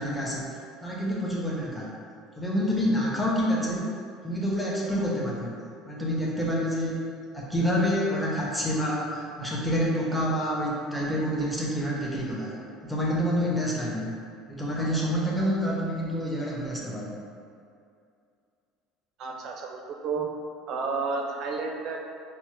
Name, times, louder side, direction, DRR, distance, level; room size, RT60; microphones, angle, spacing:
voice 1, 0.0-1.9 2.4-4.0 4.2-5.5 5.8-14.1 14.5-17.2, equal, 5° left, -5 dB, 0.6 m, -28 dB
voice 2, 19.2-20.3 20.7-22.0, right 4 dB, 50° right, 1 dB, 0.4 m, -31 dB
4.3 x 2.0 x 3.0 m, 2.4 s
cardioid pair, 140°, 0 cm